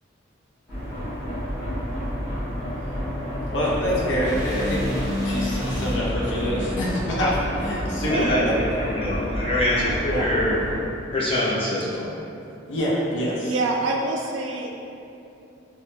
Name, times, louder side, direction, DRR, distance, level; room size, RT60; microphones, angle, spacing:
sound 1, 0.7-10.7, equal, 10° left, 1.0 m, -30 dB
voice 1, 3.5-4.8 5.2-8.5 10.0-10.3 12.7-13.5, equal, 75° left, -6 dB, 0.5 m, -25 dB
sound 2, 4.2-8.4, left 1 dB, 45° left, 1.0 m, -32 dB
voice 2, 8.1-10.6 11.1-12.2, left 1 dB, 30° left, -8 dB, 0.6 m, -24 dB
voice 3, 13.4-14.9, right 2 dB, 75° right, 0 dB, 0.3 m, -26 dB
3.0 x 2.1 x 3.1 m, 2.8 s
head